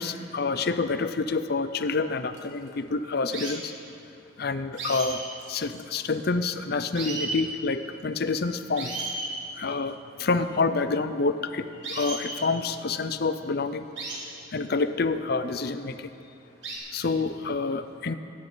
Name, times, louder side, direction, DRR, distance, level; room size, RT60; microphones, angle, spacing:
voice 1, 0.0-3.7 4.4-5.2 5.5-8.9 9.6-13.9 14.5-16.1 16.9-18.2, left 4 dB, 55° left, 11 dB, 0.6 m, -28 dB
sound 1, 2.4-2.7 3.3-3.6 4.8-6.4 6.6-6.7 6.9-7.4 8.4-8.5 8.8-9.3 11.8-12.4 14.0-14.2 15.3-15.4 16.6-16.8, right 3 dB, 70° right, 3.3 m, -34 dB
24.0 x 9.5 x 4.0 m, 2.6 s
head